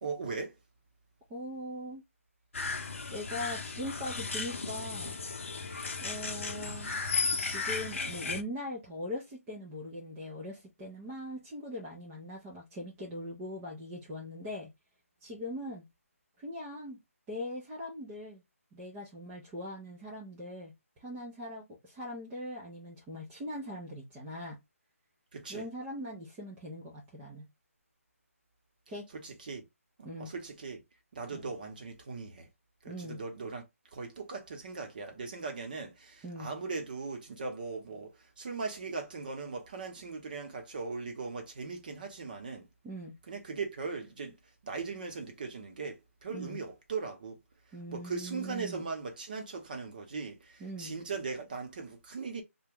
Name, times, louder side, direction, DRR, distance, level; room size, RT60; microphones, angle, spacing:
voice 1, 0.0-0.5 25.3-25.6 29.1-29.7 30.0-30.8 31.1-32.5 32.8-33.6 33.9-38.1 38.4-42.7 43.3-44.3 44.6-46.0 46.2-47.4 47.9-52.4, right 4 dB, 35° right, 0.8 m, -39 dB
voice 2, 1.3-2.0 3.1-5.2 6.0-6.9 7.4-14.7 15.2-15.8 16.4-17.0 17.3-18.4 18.7-20.7 21.0-24.6 25.5-27.5 28.9-29.1 30.0-30.3 31.3-31.5 32.9-33.2 36.2-36.5 42.8-43.1 46.3-46.6 47.7-48.9 50.6-50.9, left 1 dB, 5° right, 0.3 m, -41 dB
sound 1, 2.5-8.4, left 4 dB, 55° left, 0.7 m, -35 dB
2.8 x 2.2 x 3.4 m
hypercardioid pair, 170°, 8 cm